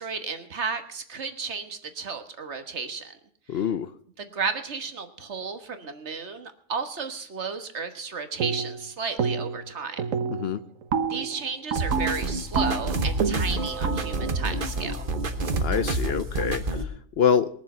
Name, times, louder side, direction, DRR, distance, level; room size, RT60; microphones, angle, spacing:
voice 1, 0.0-3.1 4.2-10.0 11.1-15.1, right 5 dB, 60° right, 8 dB, 1.6 m, -33 dB
voice 2, 3.5-3.9 10.3-10.6 15.6-17.5, left 7 dB, 60° left, 13 dB, 0.8 m, -26 dB
sound 1, 8.4-8.9 9.2-9.7 10.0-15.8, right 6 dB, 85° right, 1.4 m, -30 dB
sound 2, 11.8-16.8, right 2 dB, 45° right, 1.3 m, -28 dB
21.5 x 7.2 x 5.6 m, 0.63 s
omnidirectional pair, 1.3 m